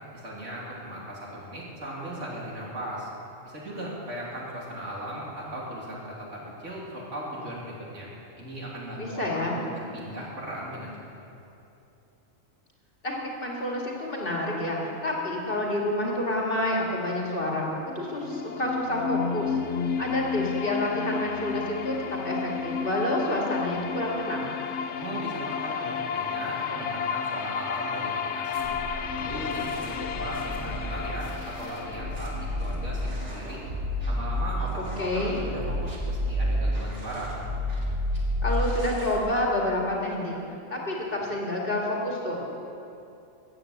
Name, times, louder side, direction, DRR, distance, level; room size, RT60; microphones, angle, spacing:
voice 1, 0.1-3.1 3.4-8.1 8.4-10.9 24.9-28.8 29.1-33.6 34.1-37.3, right 1 dB, 70° right, -5 dB, 3.3 m, -37 dB
voice 2, 9.0-9.6 13.0-17.7 18.0-19.5 20.0-24.5 34.6-34.7 35.0-35.4 38.4-40.4 40.7-42.4, left 1 dB, 45° left, -2 dB, 2.3 m, -28 dB
sound 1, 17.9-33.9, left 6 dB, 65° left, 0.9 m, -32 dB
sound 2, 28.5-39.2, left 1 dB, 50° right, 2.4 m, -31 dB
13.5 x 8.7 x 7.9 m, 2.7 s
omnidirectional pair, 1.3 m